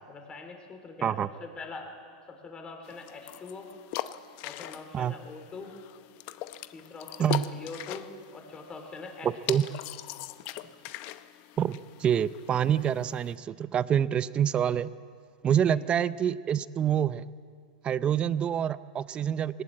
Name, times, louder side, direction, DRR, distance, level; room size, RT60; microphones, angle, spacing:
voice 1, 0.1-1.9 2.3-3.7 4.4-5.7 6.7-9.6 15.4-15.8, left 4 dB, 20° left, 4 dB, 3.3 m, -43 dB
sound 1, 2.8-13.3, left 14 dB, 45° left, 0.8 m, -41 dB
voice 2, 9.2-9.6 11.6-14.9 15.4-17.3 17.8-19.6, right 9 dB, 25° right, 16 dB, 0.6 m, -26 dB
21.0 x 19.5 x 8.6 m, 2.1 s
supercardioid pair, 135°, 4 cm